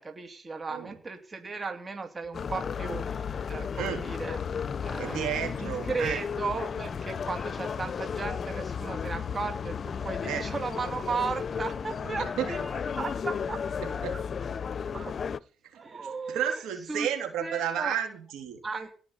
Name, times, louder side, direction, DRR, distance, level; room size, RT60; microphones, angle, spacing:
voice 1, 0.0-4.4 4.8-13.6 14.1-14.2 14.7-15.1 15.7-16.6 16.9-17.1 17.4-17.9 18.6-19.0, right 4 dB, 30° right, 5 dB, 2.7 m, -35 dB
sound 1, 2.3-15.4, left 6 dB, 45° left, 0.7 m, -34 dB
voice 2, 5.0-6.2 10.3-10.5 12.0-12.5 13.8-14.2 15.7-15.8 16.3-18.6, right 9 dB, 90° right, 5 dB, 3.4 m, -32 dB
18.0 x 6.1 x 9.7 m, 0.43 s
cardioid pair, 90°, 0 cm